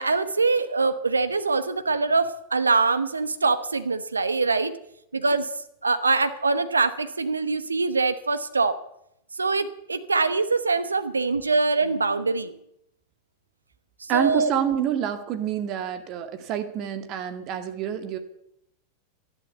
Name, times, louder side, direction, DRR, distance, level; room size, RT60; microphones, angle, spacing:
voice 1, 0.0-4.7 5.1-5.5 5.8-8.8 9.4-12.5 14.0-14.5, right 3 dB, 85° right, 12 dB, 0.9 m, -23 dB
voice 2, 14.1-18.2, right 9 dB, 45° right, 8 dB, 2.1 m, -27 dB
13.5 x 11.5 x 8.1 m, 0.76 s
figure-of-eight pair, 90°, 0 cm